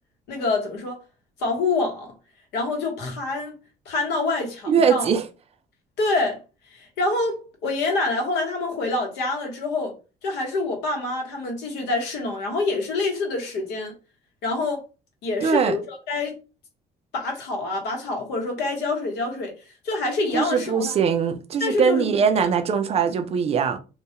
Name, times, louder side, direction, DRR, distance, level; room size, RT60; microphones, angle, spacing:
voice 1, 0.3-1.0 1.4-2.1 2.5-3.6 3.9-5.1 6.0-6.4 6.7-9.9 10.2-13.9 14.4-14.8 15.2-16.4 17.1-19.5 19.8-20.9 21.6-22.5, left 3 dB, 80° left, 0.9 m, -26 dB
voice 2, 4.7-5.2 15.4-15.8 20.3-23.8, right 6 dB, 40° right, 0.4 m, -21 dB
2.2 x 2.1 x 2.8 m
cardioid pair, 110°, 17 cm